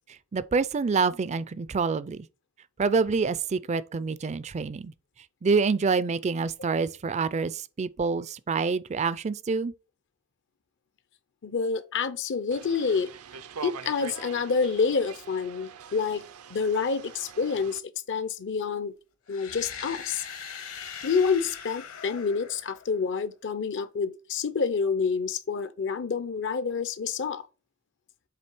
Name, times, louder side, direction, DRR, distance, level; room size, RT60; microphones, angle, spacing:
voice 1, 0.1-2.3 2.8-4.9 5.4-9.7, right 4 dB, 30° right, 0.4 m, -27 dB
voice 2, 11.4-13.1 13.6-16.2 16.5-17.8 18.1-18.9 19.3-20.3 21.0-27.4, left 5 dB, 55° left, 0.6 m, -28 dB
sound 1, 12.5-17.8, right 6 dB, 80° right, 0.6 m, -44 dB
sound 2, 19.3-23.2, left 7 dB, 75° left, 1.3 m, -41 dB
7.7 x 3.2 x 4.4 m
head